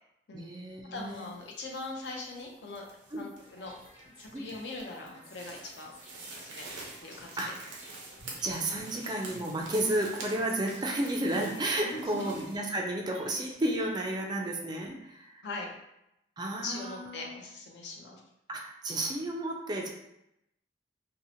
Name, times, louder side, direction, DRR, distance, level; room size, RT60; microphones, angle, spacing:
voice 1, 0.3-1.3 3.1-3.3 4.3-4.5 7.4-7.6 8.4-15.4 16.4-17.3 18.5-19.9, right 1 dB, 25° right, 0 dB, 0.3 m, -32 dB
voice 2, 0.9-2.8 3.2-3.7 4.2-5.9 6.4-6.7 7.0-7.6 11.8-12.3 14.4-14.5 15.4-15.7 16.6-18.2, left 2 dB, 70° left, 0 dB, 0.5 m, -41 dB
sound 1, 1.0-12.6, right 3 dB, 90° right, 0.6 m, -48 dB
sound 2, 3.4-14.5, equal, 35° left, 1.2 m, -55 dB
2.7 x 2.0 x 2.6 m, 0.82 s
head